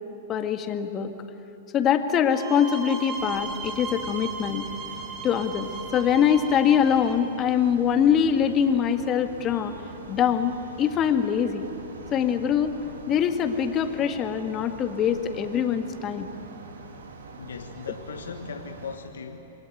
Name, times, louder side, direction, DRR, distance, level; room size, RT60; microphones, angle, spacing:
voice 1, 0.3-1.1 1.7-4.7 5.2-9.8 10.1-11.7 12.1-12.7 13.1-16.3, left 8 dB, 30° left, 7 dB, 1.8 m, -23 dB
sound 1, 2.3-7.2, right 4 dB, 30° right, 6.3 m, -37 dB
sound 2, 3.1-19.0, right 3 dB, 85° right, 2.8 m, -44 dB
voice 2, 17.4-19.5, left 5 dB, 85° left, 5 dB, 1.3 m, -38 dB
26.5 x 21.0 x 9.2 m, 2.8 s
hypercardioid pair, 115°, 0 cm